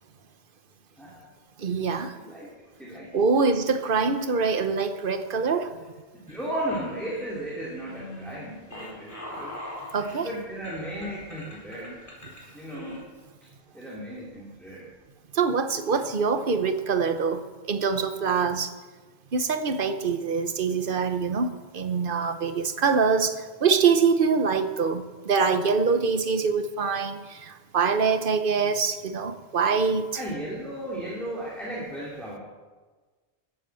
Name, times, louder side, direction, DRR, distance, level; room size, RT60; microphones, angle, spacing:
voice 1, 1.6-2.2 3.1-5.8 9.9-10.3 15.3-18.7 19.3-30.2, right 5 dB, 60° right, 10 dB, 1.1 m, -24 dB
voice 2, 2.1-2.5 2.8-3.1 6.1-9.6 10.2-12.0 12.5-13.0 13.7-14.9 30.1-32.4, right 1 dB, ahead, -5 dB, 2.6 m, -35 dB
sound 1, 6.3-13.0, left 1 dB, 15° left, 4.2 m, -42 dB
14.5 x 8.5 x 7.6 m, 1.4 s
omnidirectional pair, 1.0 m